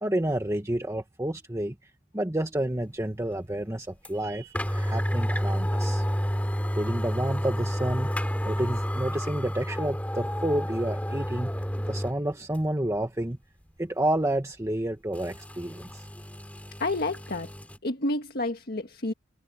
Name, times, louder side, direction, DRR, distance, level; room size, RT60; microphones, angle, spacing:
voice 1, 0.0-1.7 2.1-6.0 6.8-8.1 8.5-11.5 11.9-13.4 13.8-16.1, right 1 dB, 15° right, 1.4 m, -29 dB
sound 1, 4.0-4.1 4.5-12.2 12.5-12.6 15.1-17.8, equal, 10° left, 3.7 m, -30 dB
voice 2, 16.8-17.5 17.8-19.1, left 2 dB, 55° left, 1.6 m, -29 dB
head